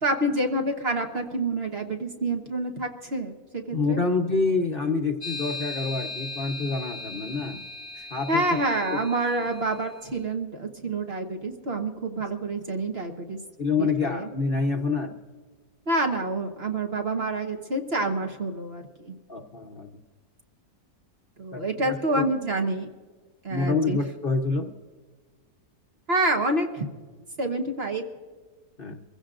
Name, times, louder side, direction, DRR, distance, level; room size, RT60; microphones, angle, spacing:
voice 1, 0.0-4.0 8.3-13.4 13.8-14.3 15.9-19.1 21.4-22.9 23.4-24.0 26.1-26.9 27.4-28.1, right 2 dB, 40° right, 3 dB, 1.3 m, -27 dB
voice 2, 3.7-7.6 8.0-8.4 8.9-9.0 13.6-15.1 19.3-19.9 21.5-22.2 23.5-24.7 28.8-29.0, left 4 dB, 40° left, 2 dB, 1.0 m, -27 dB
sound 1, 5.2-9.9, left 2 dB, 15° left, 1.2 m, -38 dB
25.0 x 16.0 x 2.5 m, 1.5 s
omnidirectional pair, 1.7 m